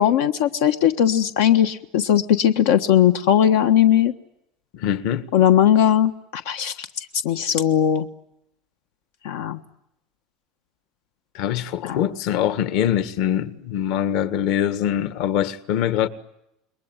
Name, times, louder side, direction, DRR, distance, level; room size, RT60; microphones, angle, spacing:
voice 1, 0.0-4.1 5.3-8.1 9.2-9.6 11.9-12.0, left 10 dB, 85° left, 1.4 m, -18 dB
voice 2, 4.7-5.2 11.3-16.1, left 10 dB, 55° left, 1.7 m, -23 dB
28.0 x 22.0 x 8.9 m
cardioid pair, 165°, 0 cm